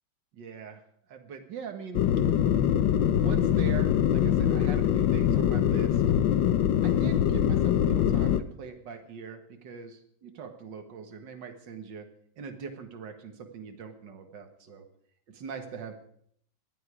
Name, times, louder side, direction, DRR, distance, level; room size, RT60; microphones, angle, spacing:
voice 1, 0.3-0.8 1.1-2.1 3.2-6.0 6.8-12.1 12.4-14.8 15.3-15.9, right 5 dB, 75° right, 5 dB, 2.2 m, -41 dB
sound 1, 1.9-8.4, left 10 dB, 85° left, 1.5 m, -23 dB
19.5 x 12.5 x 4.9 m, 0.66 s
omnidirectional pair, 2.0 m